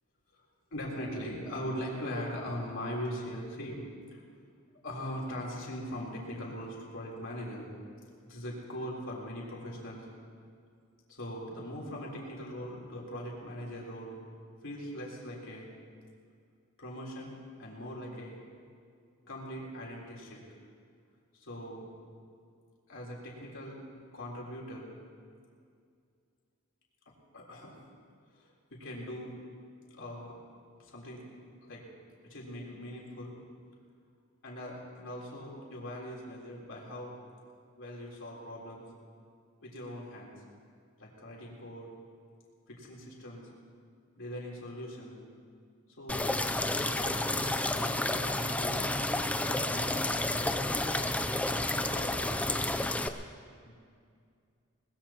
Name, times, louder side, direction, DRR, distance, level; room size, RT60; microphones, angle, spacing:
voice 1, 0.7-3.8 4.1-4.2 4.8-7.7 8.2-10.1 11.1-14.2 14.6-15.7 16.8-18.4 19.2-20.4 21.3-21.9 22.9-23.8 24.1-24.9 27.3-27.8 28.3-29.4 29.9-30.4 30.8-31.3 31.6-31.9 32.2-33.4 34.4-37.1 37.8-38.9 39.6-40.4 41.0-41.9 42.7-43.5 44.2-45.2 46.0-51.0 51.7-52.6 53.7-53.8, equal, 60° left, -3 dB, 3.7 m, -41 dB
sound 1, 46.1-53.1, left 2 dB, 5° left, 0.5 m, -30 dB
21.5 x 20.5 x 3.0 m, 2.2 s
head